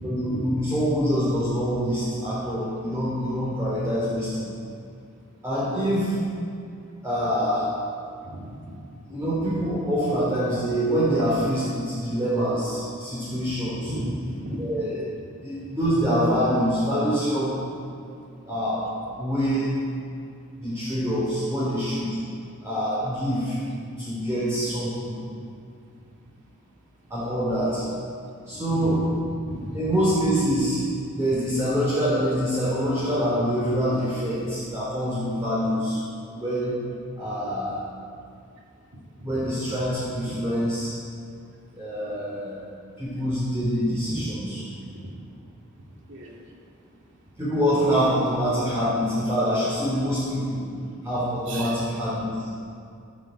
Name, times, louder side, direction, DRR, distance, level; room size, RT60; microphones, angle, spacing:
voice 1, 0.0-4.5 5.4-6.2 7.0-7.7 9.1-13.9 14.6-15.0 15.4-17.6 18.4-18.9 19.2-19.8 20.6-22.2 22.6-23.6 24.0-25.1 27.1-27.8 28.5-29.1 29.7-30.8 31.1-36.0 36.3-36.8 37.2-37.8 39.2-41.0 41.7-42.6 43.0-44.6 47.4-50.6 51.0-52.5, equal, 15° right, -10 dB, 3.9 m, -25 dB
voice 2, 8.2-8.6 13.3-13.4 13.9-14.7 28.7-29.8 39.2-39.5 40.2-40.3 44.0-44.3 44.9-45.0 46.1-46.3 51.5-51.8, equal, 55° right, -1 dB, 2.5 m, -35 dB
13.0 x 10.5 x 7.9 m, 2.4 s
head